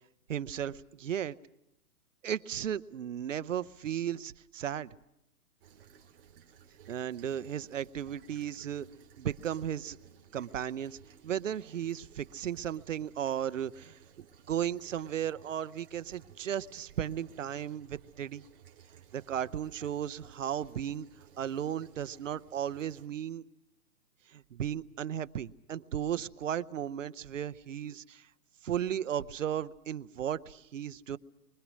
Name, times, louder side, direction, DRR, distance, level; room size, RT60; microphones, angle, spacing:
voice 1, 0.3-1.4 2.2-4.9 6.9-8.9 9.2-10.0 10.3-11.0 11.2-18.4 19.1-21.1 21.4-23.4 24.3-28.2 28.6-31.2, right 9 dB, 55° right, 16 dB, 0.8 m, -35 dB
sound 1, 5.6-23.1, right 8 dB, 35° right, 2.6 m, -58 dB
28.5 x 24.0 x 6.3 m, 0.84 s
hypercardioid pair, 170°, 45 cm